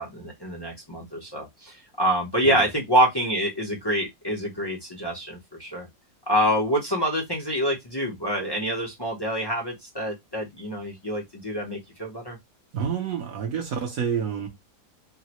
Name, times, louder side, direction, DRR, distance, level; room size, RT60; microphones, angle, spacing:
voice 1, 0.0-5.9 6.3-12.4, equal, 35° left, 0.3 m, -26 dB
voice 2, 12.7-14.5, right 7 dB, 65° right, 1.0 m, -28 dB
3.7 x 2.0 x 2.8 m
omnidirectional pair, 1.8 m